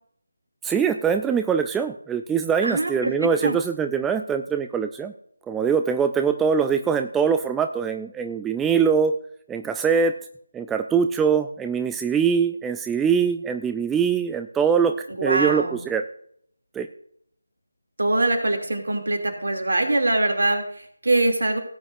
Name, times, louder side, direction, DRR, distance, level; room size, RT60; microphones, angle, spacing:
voice 1, 0.6-5.1 5.5-9.1 9.5-10.1 10.5-15.0 15.2-16.1 16.7-16.9, right 6 dB, 5° right, 7 dB, 0.3 m, -23 dB
voice 2, 2.6-3.6 15.2-15.8 18.0-21.6, right 2 dB, 60° right, 4 dB, 2.7 m, -23 dB
17.0 x 8.5 x 2.6 m, 0.65 s
figure-of-eight pair, 160°, 0 cm